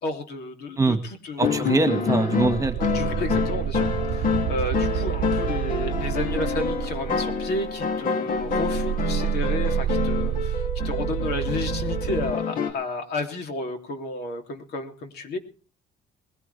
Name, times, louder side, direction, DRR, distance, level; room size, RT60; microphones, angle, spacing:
voice 1, 0.0-1.7 2.8-15.4, left 2 dB, 70° left, 5 dB, 3.2 m, -32 dB
sound 1, 1.4-12.7, left 5 dB, 55° left, 2.8 m, -27 dB
voice 2, 1.4-2.8, right 3 dB, 20° right, 9 dB, 1.9 m, -22 dB
sound 2, 2.4-7.9 8.3-12.3, right 13 dB, 70° right, 0.7 m, -29 dB
21.0 x 16.0 x 3.5 m, 0.38 s
cardioid pair, 110°, 17 cm